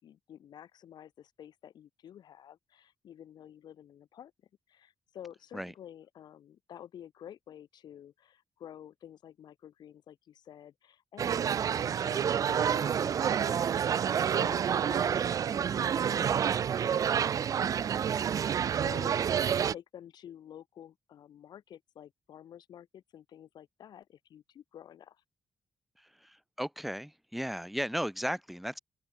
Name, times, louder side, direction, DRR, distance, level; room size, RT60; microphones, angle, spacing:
voice 1, 0.0-4.3 4.7-11.4 11.8-25.2, left 10 dB, 80° left, 5.7 m, -50 dB
sound 1, 11.2-19.7, right 8 dB, 55° right, 0.9 m, -28 dB
voice 2, 26.0-28.8, equal, ahead, 6.0 m, -36 dB
open air
wide cardioid pair, 165°, 7 cm